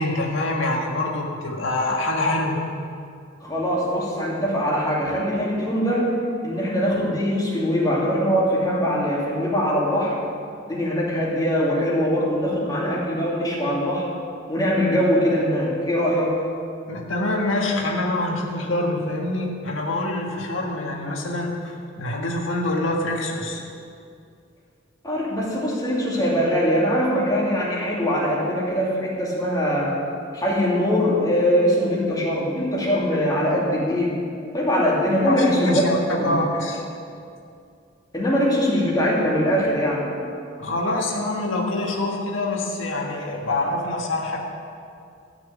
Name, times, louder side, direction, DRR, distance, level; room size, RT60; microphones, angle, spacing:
voice 1, 0.0-2.6 16.9-23.6 35.3-35.9 36.2-36.8 40.6-44.4, left 2 dB, 80° left, 0 dB, 1.7 m, -25 dB
voice 2, 3.4-6.2 6.4-10.2 10.7-14.1 14.5-16.4 25.0-30.0 30.3-34.1 34.5-36.4 38.1-40.1, equal, 20° left, -4 dB, 2.6 m, -22 dB
13.5 x 6.2 x 8.5 m, 2.4 s
head